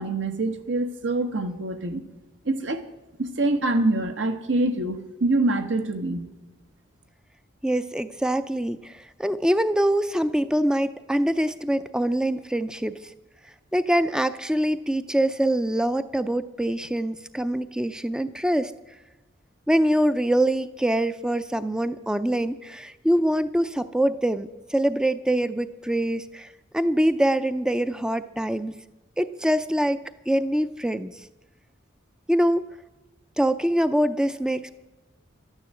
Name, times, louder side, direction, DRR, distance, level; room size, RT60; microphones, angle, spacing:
voice 1, 0.0-2.0 2.4-2.8 3.2-6.3, right 2 dB, 75° right, 7 dB, 1.3 m, -25 dB
voice 2, 7.6-13.1 13.7-18.7 19.7-28.7 29.2-31.1 32.3-32.6 33.4-34.7, right 1 dB, 5° right, 12 dB, 0.4 m, -24 dB
12.5 x 9.7 x 7.6 m, 1.1 s
head